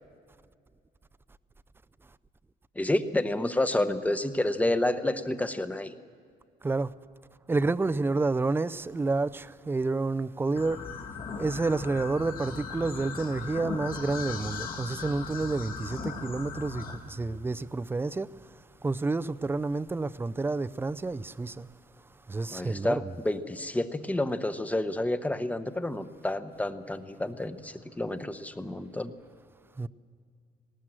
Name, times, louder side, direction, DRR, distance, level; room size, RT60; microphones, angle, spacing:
voice 1, 2.7-6.0 22.5-29.1, left 1 dB, 10° left, 0.9 m, -29 dB
voice 2, 7.5-10.8 11.4-18.3 18.8-21.7 22.3-23.2 29.8-29.9, right 3 dB, 15° right, 0.4 m, -29 dB
sound 1, 10.6-16.9, left 5 dB, 60° left, 2.5 m, -38 dB
19.0 x 19.0 x 7.6 m
cardioid pair, 125°, 17 cm